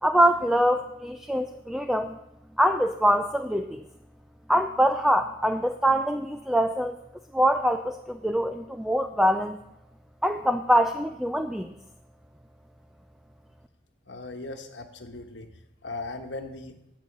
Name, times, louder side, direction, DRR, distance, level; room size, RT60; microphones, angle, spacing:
voice 1, 0.0-2.2 2.6-3.8 4.5-6.9 7.3-9.6 10.2-11.7, equal, ahead, 7 dB, 0.4 m, -24 dB
voice 2, 14.1-15.5 15.8-16.7, left 2 dB, 80° left, 5 dB, 1.2 m, -38 dB
11.0 x 8.4 x 6.8 m, 0.87 s
head